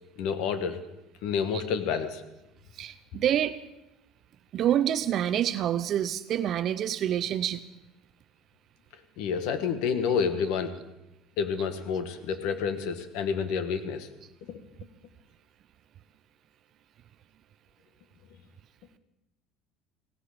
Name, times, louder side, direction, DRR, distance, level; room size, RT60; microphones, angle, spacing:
voice 1, 0.2-0.8 1.2-2.2 9.2-10.7 11.4-14.1 14.5-14.6, left 6 dB, 70° left, 9 dB, 1.4 m, -29 dB
voice 2, 2.7-3.6 4.5-7.6, right 10 dB, 45° right, 13 dB, 0.5 m, -27 dB
17.0 x 16.0 x 5.0 m, 0.95 s
cardioid pair, 150°, 0 cm